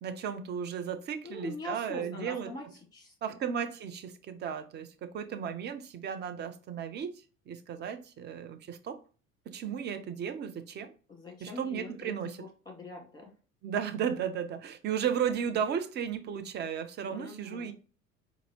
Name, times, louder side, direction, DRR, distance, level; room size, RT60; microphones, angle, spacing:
voice 1, 0.0-2.5 3.2-7.1 7.5-9.0 9.5-10.9 11.4-12.4 13.6-17.7, right 8 dB, 25° right, 0.5 m, -34 dB
voice 2, 1.2-2.7 2.9-3.1 11.1-13.3 17.1-17.7, left 2 dB, 10° left, 1.6 m, -43 dB
3.9 x 2.6 x 2.8 m
figure-of-eight pair, 60°, 40 cm